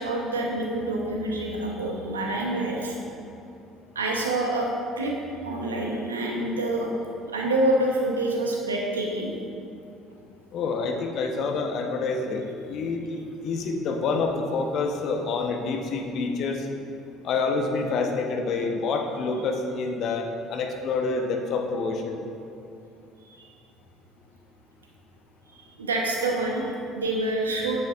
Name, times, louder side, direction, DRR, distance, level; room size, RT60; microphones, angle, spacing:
voice 1, 0.0-3.0 3.9-5.1 5.4-6.9 7.3-9.3 23.3-23.5 25.8-27.8, right 1 dB, 90° right, -1 dB, 0.9 m, -27 dB
voice 2, 10.5-16.6 17.2-22.2, left 4 dB, 55° left, 3 dB, 0.9 m, -27 dB
9.7 x 7.7 x 2.4 m, 2.6 s
hypercardioid pair, 60°, 0 cm